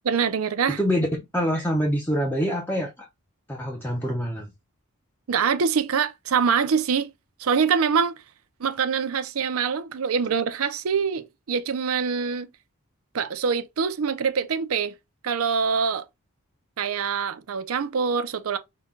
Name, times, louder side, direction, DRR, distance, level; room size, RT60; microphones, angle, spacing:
voice 1, 0.0-0.8 5.3-7.1 7.4-8.1 8.6-12.5 13.1-14.9 15.2-16.0 16.8-18.6, right 6 dB, 75° right, 0.5 m, -24 dB
voice 2, 0.8-3.1 3.5-4.5, equal, 10° left, 0.6 m, -25 dB
5.7 x 2.3 x 3.6 m
head